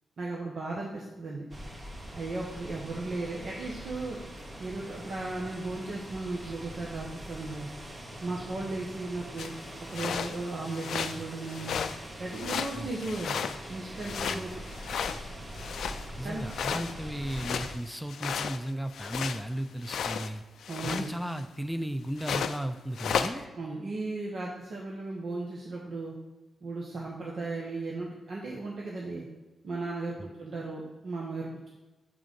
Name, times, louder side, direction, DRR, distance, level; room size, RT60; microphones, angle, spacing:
voice 1, 0.2-1.4 2.1-4.2 4.6-7.7 8.2-9.5 9.8-11.8 12.2-13.4 13.7-14.5 16.2-16.4 16.7-16.8 20.6-21.1 23.3-26.1 26.6-29.2 29.6-31.7, right 2 dB, 65° right, -3 dB, 1.2 m, -36 dB
sound 1, 1.5-17.8, right 1 dB, 40° right, 1.9 m, -43 dB
sound 2, 9.4-9.5 9.9-10.4 10.7-11.2 11.5-12.0 12.3-13.7 14.0-16.1 16.5-19.4 19.8-20.3 20.6-21.4 22.2-22.6 23.0-23.4, left 7 dB, 75° left, 0.3 m, -34 dB
voice 2, 16.2-20.4 20.8-23.4 30.2-30.3, right 1 dB, ahead, 9 dB, 0.5 m, -35 dB
7.0 x 3.7 x 5.3 m, 1.2 s
supercardioid pair, 50°, 0 cm